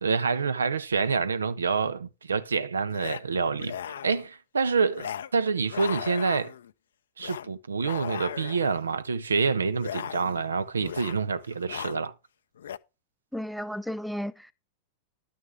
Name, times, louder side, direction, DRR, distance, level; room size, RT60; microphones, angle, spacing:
voice 1, 0.0-3.8 4.0-6.5 7.2-12.1, right 5 dB, 85° right, 0.5 m, -27 dB
sound 1, 1.0-1.1 2.9-3.2 3.5-4.3 4.9-5.3 5.6-6.7 7.2-7.5 7.8-8.8 9.8-10.5 10.8-11.2 11.5-12.0 12.6-12.8, left 9 dB, 70° left, 0.4 m, -37 dB
voice 2, 13.3-14.5, equal, ahead, 0.5 m, -33 dB
11.0 x 6.3 x 3.5 m
figure-of-eight pair, 95°, 0 cm